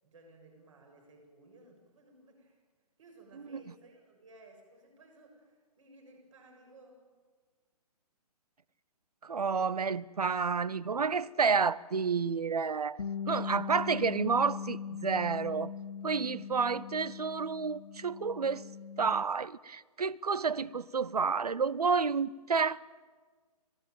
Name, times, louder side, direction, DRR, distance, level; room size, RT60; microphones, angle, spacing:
voice 1, 0.0-2.6 3.0-7.0 16.4-16.5, right 2 dB, 55° right, 7.0 m, -58 dB
voice 2, 9.2-15.7 16.0-18.6 19.0-22.8, right 5 dB, 70° right, 0.7 m, -30 dB
Bass guitar, 13.0-19.2, left 7 dB, 65° left, 0.8 m, -40 dB
26.0 x 17.0 x 9.2 m
figure-of-eight pair, 130°, 20 cm